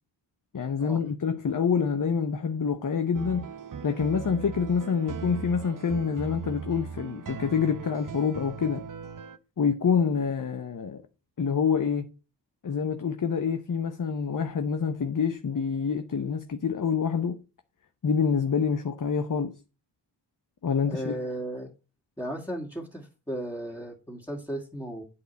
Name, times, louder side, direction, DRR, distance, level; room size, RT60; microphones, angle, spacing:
voice 1, 0.5-3.5 3.8-8.8 9.6-11.0 11.4-12.1 12.6-17.4 18.0-19.5 20.6-21.2, left 6 dB, 45° left, 0.9 m, -27 dB
sound 1, 3.1-9.4, right 6 dB, 45° right, 0.8 m, -39 dB
voice 2, 20.9-21.7 22.2-25.0, right 1 dB, 5° left, 2.2 m, -35 dB
8.3 x 4.8 x 7.0 m
cardioid pair, 50°, 44 cm